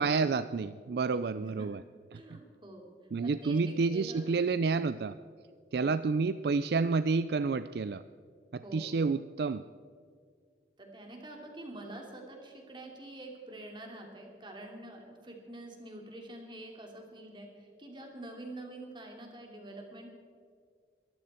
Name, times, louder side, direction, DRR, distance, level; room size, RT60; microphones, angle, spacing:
voice 1, 0.0-1.8 3.1-5.2 5.7-8.0 8.5-9.6, right 4 dB, 60° right, 13 dB, 0.4 m, -29 dB
voice 2, 1.3-1.7 2.1-2.9 3.2-4.3 5.7-5.9 8.6-8.9 10.8-20.1, right 1 dB, 25° right, 1 dB, 3.0 m, -46 dB
22.5 x 14.5 x 4.4 m, 2.1 s
head